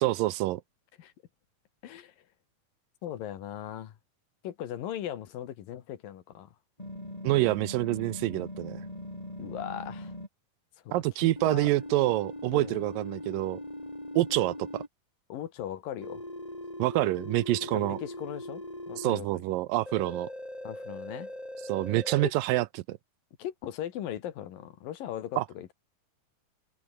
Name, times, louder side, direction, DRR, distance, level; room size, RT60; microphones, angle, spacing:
voice 1, 0.0-0.6 7.2-8.8 10.9-13.6 14.2-14.8 16.8-18.0 19.0-20.3 21.7-23.0 25.4-25.5, right 17 dB, 80° right, 2.3 m, -27 dB
voice 2, 1.8-2.2 3.0-4.0 4.4-6.5 9.4-10.1 10.8-10.9 11.2-11.7 12.5-12.8 15.3-16.2 17.7-19.4 20.6-21.3 22.2-22.3 23.4-25.7, left 11 dB, 75° left, 3.3 m, -38 dB
sound 1, 6.8-10.3 11.4-14.9 16.0-19.1 19.9-22.2, left 1 dB, 10° left, 7.1 m, -41 dB
omnidirectional pair, 4.1 m